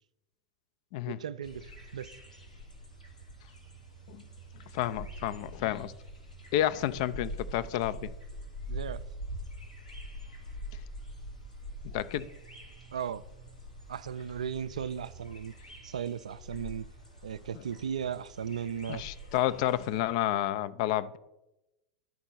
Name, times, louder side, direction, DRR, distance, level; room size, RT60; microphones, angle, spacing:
voice 1, 1.2-2.1 8.7-9.0 12.9-13.2 13.9-15.5 15.8-16.9 17.2-19.0, right 8 dB, 70° right, 0.4 m, -36 dB
sound 1, 1.4-20.0, equal, 90° left, 1.9 m, -45 dB
voice 2, 4.7-5.9 6.5-8.1 11.8-12.3 17.6-17.7 18.9-21.2, left 13 dB, 50° left, 0.4 m, -30 dB
11.0 x 4.4 x 5.8 m
figure-of-eight pair, 85°, 4 cm